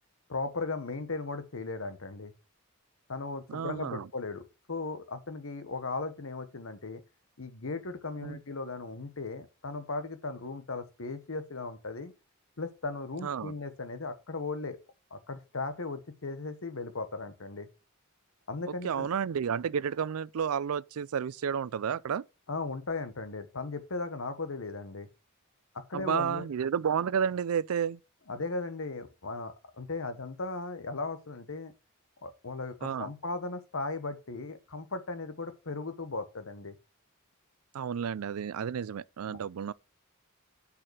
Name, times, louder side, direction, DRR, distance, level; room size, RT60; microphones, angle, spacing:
voice 1, 0.3-2.3 3.1-7.0 7.4-12.1 12.6-14.8 15.1-17.7 18.5-19.1 22.5-25.1 25.9-26.4 28.3-31.7 32.2-36.8 39.3-39.4, left 3 dB, 70° left, 1.2 m, -37 dB
voice 2, 3.5-4.1 8.2-8.4 13.2-13.5 18.8-22.3 25.9-28.0 32.8-33.1 37.7-39.7, right 7 dB, 85° right, 0.4 m, -31 dB
6.7 x 5.7 x 6.3 m
head